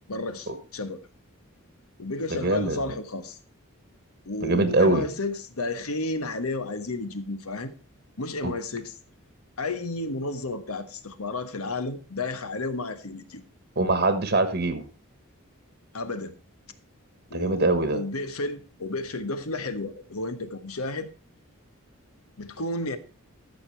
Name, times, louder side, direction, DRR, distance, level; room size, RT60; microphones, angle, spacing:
voice 1, 0.1-1.0 2.0-3.4 4.2-7.7 8.2-8.9 9.6-13.4 15.9-16.3 17.3-21.1 22.4-23.0, left 2 dB, 85° left, 1.3 m, -32 dB
voice 2, 2.3-2.8 4.4-5.0 8.4-8.5 13.8-14.8 17.3-18.0, right 2 dB, 50° right, 1.3 m, -23 dB
14.0 x 6.7 x 4.5 m
head